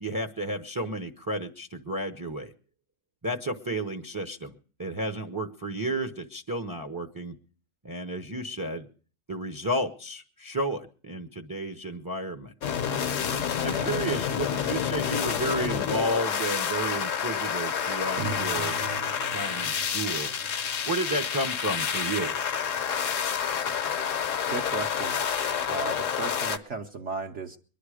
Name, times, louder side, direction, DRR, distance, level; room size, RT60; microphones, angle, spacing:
voice 1, 0.0-2.5 3.2-4.5 4.8-7.3 7.8-8.9 9.3-12.5 13.6-18.8 19.3-20.3 20.9-22.4, right 1 dB, 20° right, 5 dB, 0.6 m, -32 dB
sound 1, 12.6-26.6, left 8 dB, 60° left, 1.2 m, -29 dB
sound 2, 18.2-22.8, right 3 dB, 80° right, 1.5 m, -41 dB
voice 2, 24.5-25.2 25.7-27.6, right 4 dB, 55° right, 3 dB, 1.1 m, -35 dB
23.0 x 10.5 x 4.9 m, 0.42 s
omnidirectional pair, 1.5 m